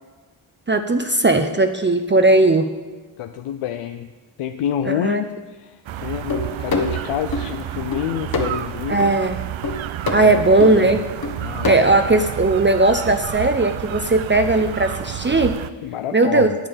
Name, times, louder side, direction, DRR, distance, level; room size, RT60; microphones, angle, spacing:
voice 1, 0.7-2.7 4.8-5.2 8.9-9.4 10.1-11.0 11.7-15.6 16.1-16.5, right 2 dB, 25° right, 7 dB, 0.7 m, -17 dB
voice 2, 3.2-4.1 4.4-9.1 10.1-11.0 11.4-11.7 15.8-16.6, left 10 dB, 90° left, 8 dB, 0.6 m, -28 dB
sound 1, 5.9-15.7, right 12 dB, 65° right, 0.6 m, -30 dB
sound 2, 6.3-7.5 7.9-8.6 9.0-9.2 9.6-10.3 10.6-10.7 11.2-11.7, left 3 dB, 45° left, 1.5 m, -25 dB
8.9 x 8.5 x 7.1 m, 1.3 s
cardioid pair, 65°, 49 cm